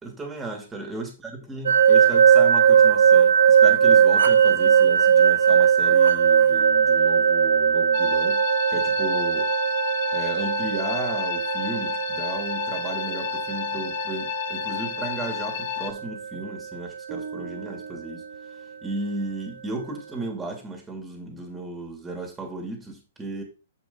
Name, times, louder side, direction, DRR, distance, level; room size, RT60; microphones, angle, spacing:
voice 1, 0.0-9.5 10.1-18.2 18.8-23.4, right 2 dB, 10° right, 2 dB, 3.1 m, -35 dB
sound 1, 1.7-16.5, right 8 dB, 75° right, 0.7 m, -19 dB
sound 2, 7.9-15.9, left 13 dB, 50° left, 1.1 m, -32 dB
sound 3, 17.1-19.3, right 5 dB, 45° right, 1.4 m, -41 dB
7.6 x 6.2 x 4.1 m, 0.31 s
hypercardioid pair, 125°, 0 cm